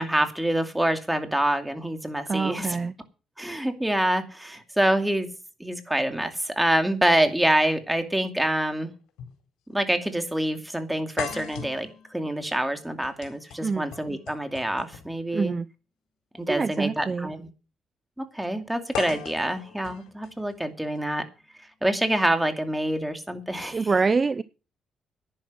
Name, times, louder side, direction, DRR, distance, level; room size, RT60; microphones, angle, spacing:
voice 1, 0.0-2.8 3.4-5.3 5.6-8.9 9.7-15.5 16.3-17.5 18.2-21.2 21.8-23.9, right 1 dB, 5° right, 7 dB, 2.4 m, -26 dB
voice 2, 2.3-2.9 13.6-13.8 15.3-15.7 16.5-17.3 23.7-24.4, right 4 dB, 30° right, 16 dB, 0.6 m, -25 dB
sound 1, 9.2-9.4 9.7-9.8 11.2-15.2 16.4-16.6 18.9-21.0, left 9 dB, 90° left, 4.3 m, -39 dB
10.5 x 10.5 x 6.3 m, 0.34 s
cardioid pair, 90°, 0 cm